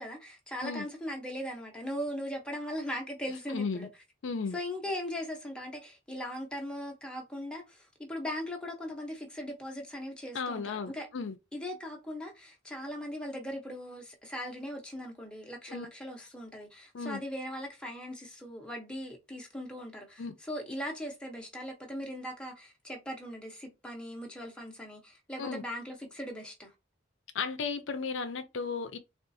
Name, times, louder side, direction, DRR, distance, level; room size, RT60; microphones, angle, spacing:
voice 1, 0.0-3.9 4.5-11.1 11.5-26.7, equal, 5° left, 0.7 m, -39 dB
voice 2, 3.5-3.9 4.2-4.6 10.3-11.4 15.7-15.9 16.9-17.2 20.2-20.3 25.4-25.6 27.3-29.0, left 5 dB, 65° left, 0.5 m, -35 dB
3.6 x 2.4 x 2.6 m
head